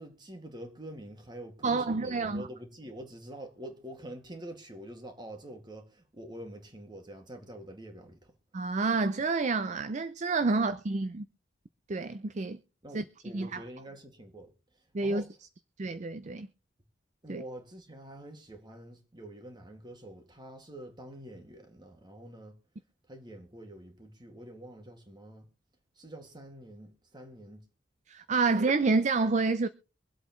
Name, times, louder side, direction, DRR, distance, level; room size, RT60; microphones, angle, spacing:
voice 1, 0.0-8.3 10.5-10.7 12.8-14.5 15.0-15.3 17.2-22.6 23.1-25.5 26.0-27.6, right 1 dB, 25° right, 2.1 m, -46 dB
voice 2, 1.6-2.5 8.5-11.3 11.9-12.6 12.9-13.0 13.3-13.6 14.9-15.2 15.8-16.5 17.3-17.4 28.1-29.7, right 3 dB, 40° right, 0.5 m, -28 dB
24.5 x 8.1 x 3.1 m
head